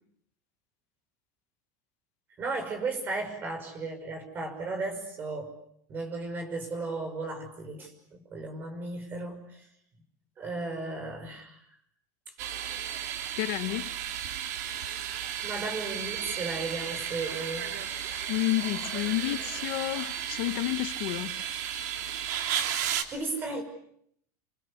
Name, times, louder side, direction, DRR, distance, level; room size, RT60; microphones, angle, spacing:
voice 1, 2.4-5.5 5.9-9.7 10.4-11.6 15.2-17.7 23.1-23.6, right 3 dB, 20° right, 5 dB, 6.1 m, -35 dB
sound 1, 12.4-23.0, right 9 dB, 70° right, 3.2 m, -34 dB
voice 2, 13.4-13.9 18.0-21.4, left 18 dB, 50° left, 12 dB, 1.1 m, -30 dB
28.5 x 24.5 x 8.4 m, 0.70 s
supercardioid pair, 175°, 9 cm